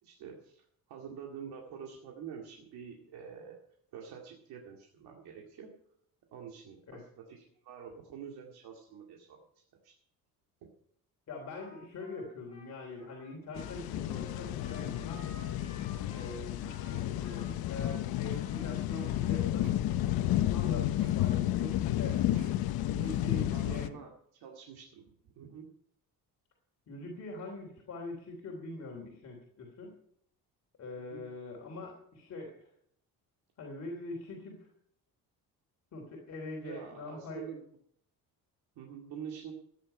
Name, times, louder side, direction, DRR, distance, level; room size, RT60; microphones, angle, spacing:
voice 1, 0.0-3.6 3.9-5.7 6.3-9.4 9.8-9.9 10.6-10.7 17.2-17.4 23.5-25.0 25.4-25.7 31.0-31.2 36.6-37.7 38.8-39.5, right 7 dB, 90° right, 0 dB, 2.3 m, -47 dB
voice 2, 11.3-15.2 16.1-19.7 20.5-22.2 22.8-24.0 26.9-29.9 30.8-32.7 33.6-34.7 35.9-37.4, left 2 dB, 45° left, -1 dB, 3.1 m, -43 dB
Trumpet, 11.5-19.8, left 1 dB, 15° left, 4.7 m, -55 dB
sound 1, 13.6-23.9, left 13 dB, 70° left, 0.9 m, -31 dB
sound 2, 18.3-18.6 19.0-19.3 19.6-19.7 20.3-20.7 21.0-21.3 21.7-22.1 22.3-22.7 23.0-23.2 23.7-24.1 24.7-24.8, right 2 dB, 65° right, 4.7 m, -57 dB
14.5 x 10.0 x 5.5 m, 0.69 s
cardioid pair, 160°, 38 cm